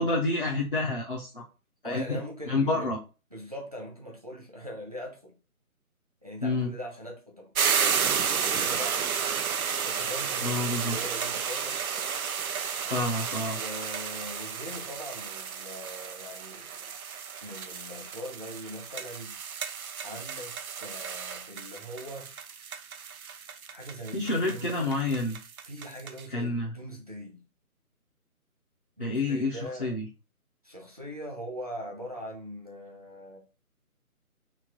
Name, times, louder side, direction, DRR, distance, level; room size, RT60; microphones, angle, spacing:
voice 1, 0.0-1.5 1.8-2.2 2.5-3.0 6.4-6.7 10.4-11.0 12.9-13.6 24.1-25.4 26.3-26.8 29.0-30.1, left 2 dB, 40° left, 0.4 m, -28 dB
voice 2, 1.8-2.9 3.3-5.3 6.2-9.1 9.8-11.8 13.6-16.8 17.4-19.4 20.0-22.3 23.7-24.7 25.7-27.4 29.0-29.9 30.6-33.4, equal, 25° right, 0.5 m, -41 dB
sound 1, 7.5-26.2, right 7 dB, 75° right, 0.6 m, -32 dB
3.1 x 2.5 x 3.7 m
figure-of-eight pair, 155°, 44 cm